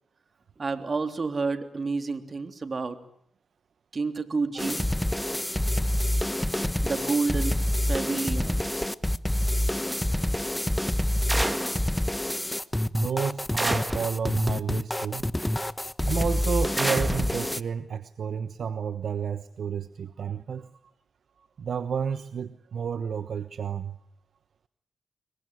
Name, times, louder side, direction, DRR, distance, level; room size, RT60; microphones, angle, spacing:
voice 1, 0.6-3.0 3.9-4.9 6.8-7.6 7.9-8.6, right 4 dB, 50° right, 8 dB, 3.4 m, -29 dB
sound 1, 4.6-17.6, left 1 dB, 10° left, 1.3 m, -27 dB
sound 2, 11.3-11.8 13.6-14.1 16.8-17.3, right 1 dB, 15° right, 2.4 m, -28 dB
voice 2, 12.9-15.3 16.1-20.7 21.6-24.0, right 7 dB, 70° right, 12 dB, 1.1 m, -31 dB
26.0 x 22.5 x 9.3 m, 0.67 s
supercardioid pair, 50°, 0 cm